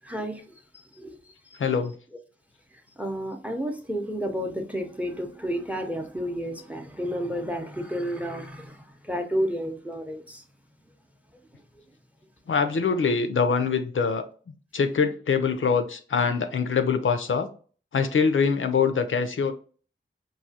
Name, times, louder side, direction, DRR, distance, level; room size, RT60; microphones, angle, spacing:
voice 1, 0.0-0.4 0.7-1.2 1.5-1.6 3.0-10.4, equal, 5° right, 0.6 m, -31 dB
voice 2, 1.6-1.9 12.5-14.3 14.7-17.5 17.9-19.5, left 5 dB, 80° left, 0.5 m, -24 dB
4.7 x 2.7 x 2.7 m
wide cardioid pair, 70°, 20 cm